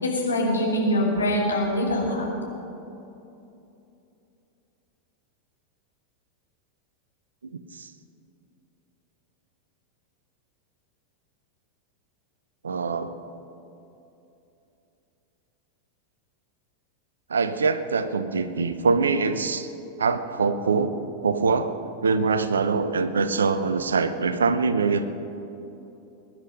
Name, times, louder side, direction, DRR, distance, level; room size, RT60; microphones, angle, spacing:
voice 1, 0.0-2.3, left 1 dB, 75° left, -2 dB, 3.2 m, -24 dB
voice 2, 7.5-7.9 12.6-13.1 17.3-19.7 20.0-20.9 21.2-21.8 22.0-25.1, right 4 dB, 70° right, 12 dB, 0.8 m, -24 dB
21.5 x 10.5 x 5.3 m, 2.9 s
figure-of-eight pair, 90°, 0 cm